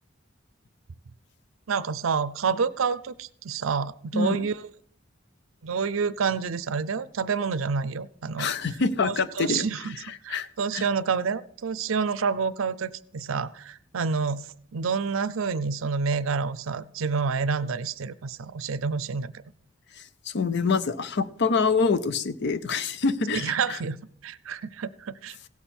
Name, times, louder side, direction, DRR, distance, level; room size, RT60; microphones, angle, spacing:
voice 1, 1.7-4.7 5.6-8.5 9.0-10.0 10.2-19.3 23.3-24.0 24.2-25.4, right 5 dB, 85° right, 17 dB, 0.5 m, -28 dB
voice 2, 8.4-9.7 10.3-10.5 10.7-10.8 20.0-23.8, left 4 dB, 60° left, 14 dB, 0.6 m, -26 dB
16.5 x 7.2 x 4.3 m, 0.63 s
head